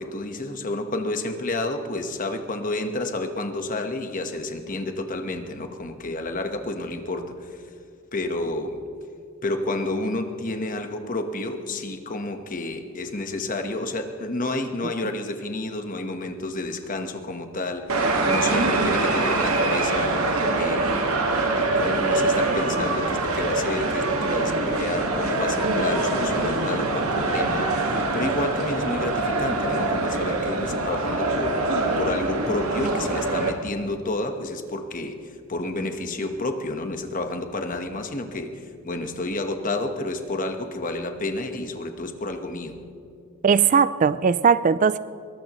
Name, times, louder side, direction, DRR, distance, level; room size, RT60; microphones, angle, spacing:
voice 1, 0.0-7.6 8.1-8.8 9.4-20.3 20.6-21.0 21.3-42.8, left 2 dB, 40° left, 1.3 m, -30 dB
sound 1, 17.9-33.5, right 2 dB, 90° right, 1.8 m, -24 dB
voice 2, 43.4-45.0, right 6 dB, 35° right, 0.3 m, -19 dB
22.0 x 20.0 x 3.1 m
head